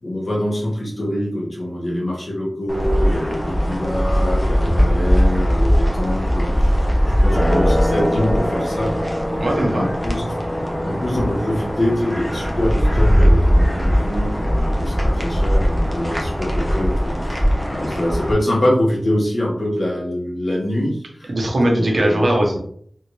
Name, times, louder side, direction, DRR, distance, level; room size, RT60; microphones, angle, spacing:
voice 1, 0.0-6.8 7.0-8.9 9.7-10.2 10.8-21.3 21.7-22.4, left 1 dB, 60° left, -4 dB, 1.5 m, -24 dB
sound 1, 2.7-18.3, equal, 15° left, 0.8 m, -19 dB
voice 2, 9.4-9.9 21.3-22.6, right 1 dB, 70° right, -1 dB, 1.0 m, -19 dB
3.6 x 2.6 x 3.1 m, 0.62 s
wide cardioid pair, 65°, 0 cm